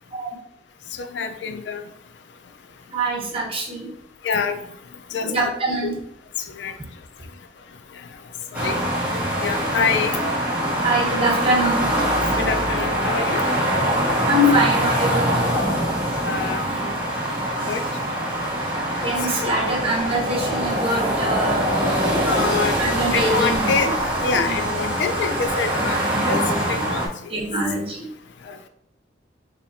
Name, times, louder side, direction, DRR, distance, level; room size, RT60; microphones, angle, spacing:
voice 1, 0.9-1.8 4.2-4.6 5.1-5.3 5.8-5.9 6.4-6.7 7.9-8.1 8.5-8.8 9.4-10.2 12.4-13.4 16.2-16.6 17.3-17.8 19.4-19.8 22.2-22.8 23.1-27.3 28.4-28.7, left 6 dB, 70° left, 9 dB, 0.4 m, -26 dB
voice 2, 2.9-3.9 5.2-6.0 10.8-11.9 14.2-15.6 19.0-21.6 22.8-23.7 24.3-24.7 25.7-26.6 27.3-28.1, right 1 dB, 30° right, -3 dB, 1.1 m, -24 dB
sound 1, 8.5-27.1, right 1 dB, 10° right, 0.9 m, -23 dB
3.9 x 2.9 x 2.6 m, 0.74 s
head